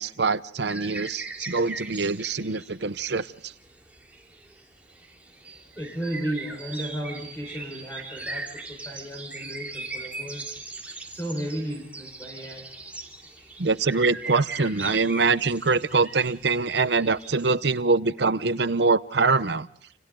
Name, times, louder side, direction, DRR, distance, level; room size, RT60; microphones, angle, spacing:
voice 1, 0.0-3.5 13.6-19.7, right 4 dB, 65° right, 14 dB, 0.8 m, -24 dB
sound 1, 0.7-17.5, right 3 dB, 10° right, 3.2 m, -40 dB
voice 2, 5.7-10.5 11.1-12.7 13.3-13.6, right 1 dB, 15° left, 2 dB, 5.0 m, -34 dB
29.5 x 28.0 x 3.8 m, 0.63 s
head